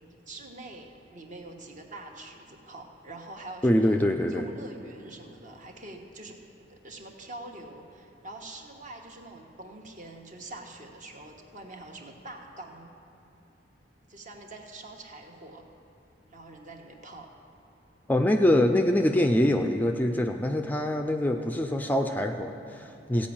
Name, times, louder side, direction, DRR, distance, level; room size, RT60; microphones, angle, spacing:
voice 1, 0.3-4.0 4.3-6.4 6.7-12.9 14.1-15.7 16.3-17.3, right 2 dB, 45° right, 2 dB, 1.2 m, -45 dB
voice 2, 3.6-4.4 18.1-23.3, left 1 dB, 10° left, 5 dB, 0.4 m, -24 dB
15.5 x 5.3 x 8.7 m, 2.9 s
head